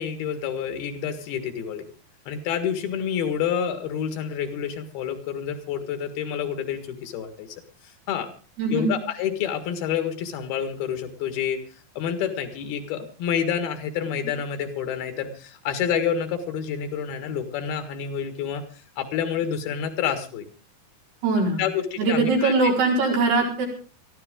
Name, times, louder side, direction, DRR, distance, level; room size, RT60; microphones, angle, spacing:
voice 1, 0.0-1.9 2.3-7.6 8.1-8.3 8.7-11.6 12.0-20.4 21.6-22.7, left 8 dB, 75° left, 8 dB, 3.6 m, -28 dB
voice 2, 8.6-8.9 21.2-21.6 22.0-23.7, right 3 dB, 90° right, -1 dB, 6.7 m, -21 dB
22.0 x 14.0 x 3.7 m, 0.37 s
omnidirectional pair, 4.4 m